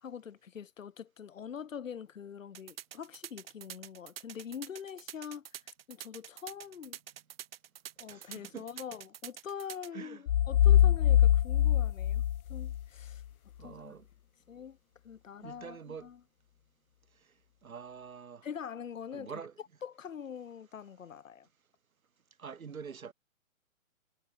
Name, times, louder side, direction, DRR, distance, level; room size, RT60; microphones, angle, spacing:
voice 1, 0.0-5.5 5.9-7.0 8.0-12.2 12.5-13.2 13.6-13.9 14.5-14.8 15.0-16.2 18.4-19.5 19.8-21.5, left 8 dB, 70° left, 2.9 m, -44 dB
sound 1, 2.5-9.9, right 11 dB, 45° right, 4.4 m, -46 dB
voice 2, 8.1-8.7 9.9-10.2 13.6-14.1 15.4-16.1 17.2-17.3 17.6-18.5 19.1-19.5 22.4-23.1, right 6 dB, 90° right, 2.4 m, -45 dB
sound 2, 10.3-13.1, left 11 dB, 90° left, 0.6 m, -24 dB
hypercardioid pair, 155°, 41 cm